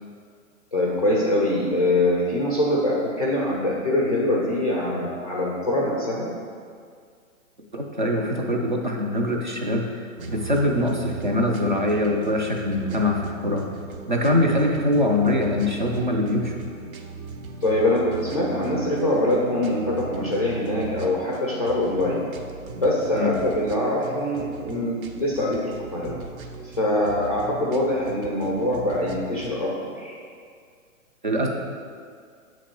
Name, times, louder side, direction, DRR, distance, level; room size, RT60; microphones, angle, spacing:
voice 1, 0.7-6.3 14.2-14.4 17.6-22.3 22.7-26.2 26.8-30.1, left 1 dB, 30° left, -6 dB, 0.4 m, -24 dB
voice 2, 7.7-10.0 10.3-13.7 14.1-16.6 23.1-23.3 31.2-31.5, left 1 dB, 40° right, 0 dB, 0.4 m, -23 dB
sound 1, 10.2-29.6, right 4 dB, 85° right, 0.7 m, -38 dB
7.3 x 3.0 x 4.3 m, 2.1 s
hypercardioid pair, 175°, 41 cm